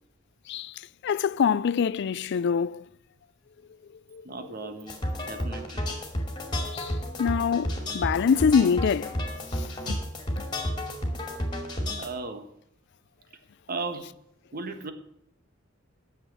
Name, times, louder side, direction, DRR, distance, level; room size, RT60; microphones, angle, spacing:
voice 1, 1.0-2.8 4.1-4.2 6.7-6.9 7.2-9.1 9.9-10.0, left 6 dB, 60° left, 0.4 m, -24 dB
voice 2, 4.2-5.9 12.0-12.5 13.7-14.1 14.5-14.9, right 3 dB, 50° right, 1.4 m, -36 dB
sound 1, 4.9-12.1, equal, 25° left, 2.5 m, -31 dB
10.0 x 7.3 x 9.3 m
head